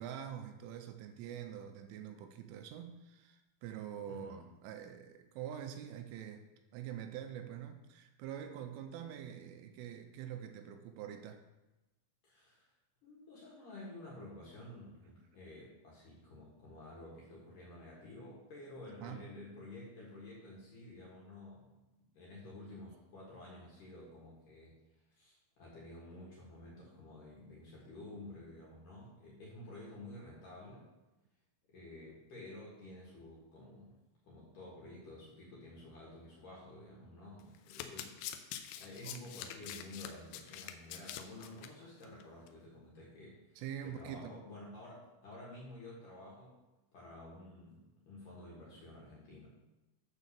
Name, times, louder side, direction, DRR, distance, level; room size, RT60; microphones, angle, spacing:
voice 1, 0.0-6.5 6.7-11.4 18.9-19.3 39.0-39.2 43.6-44.4, right 9 dB, 85° right, 6 dB, 3.1 m, -45 dB
voice 2, 4.0-4.4 12.2-12.7 13.0-21.7 22.1-24.8 25.2-30.9 31.7-34.0 34.2-46.6 46.9-49.5, left 1 dB, 55° left, -5 dB, 2.6 m, -51 dB
Domestic sounds home sounds, 37.4-41.7 42.0-42.2 42.5-42.6, left 10 dB, 90° left, 2.4 m, -45 dB
9.2 x 4.1 x 6.8 m, 1.0 s
omnidirectional pair, 5.7 m